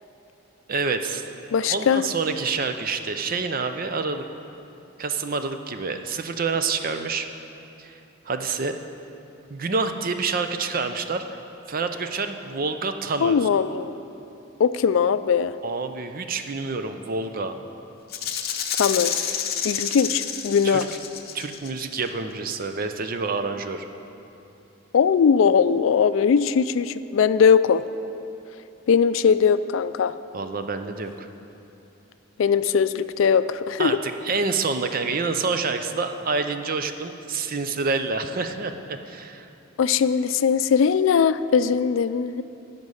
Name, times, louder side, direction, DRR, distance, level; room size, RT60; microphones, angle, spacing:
voice 1, 0.7-1.2 1.6-4.2 5.0-7.3 7.8-8.0 8.3-8.7 9.5-11.2 11.7-13.4 15.6-17.6 20.6-20.9 21.3-23.9 30.3-31.3 33.8-39.5, right 4 dB, 45° right, 8 dB, 0.5 m, -27 dB
voice 2, 1.5-2.0 13.2-13.9 14.6-15.5 18.8-19.1 19.6-20.9 24.9-27.8 28.9-30.1 32.4-34.0 39.8-42.4, left 6 dB, 70° left, 13 dB, 0.3 m, -20 dB
Rattle (instrument), 18.1-22.0, left 8 dB, 50° left, 0.7 m, -29 dB
15.0 x 5.3 x 6.4 m, 2.8 s
head